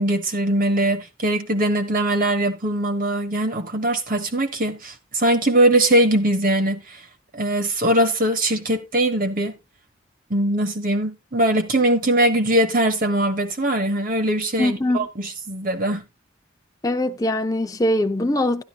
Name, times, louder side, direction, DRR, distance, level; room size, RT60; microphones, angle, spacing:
voice 1, 0.0-7.0 7.3-9.5 10.3-16.0, right 1 dB, 45° right, 1.2 m, -21 dB
voice 2, 14.6-15.1 16.8-18.6, left 1 dB, 15° left, 0.6 m, -22 dB
12.0 x 11.5 x 2.2 m
head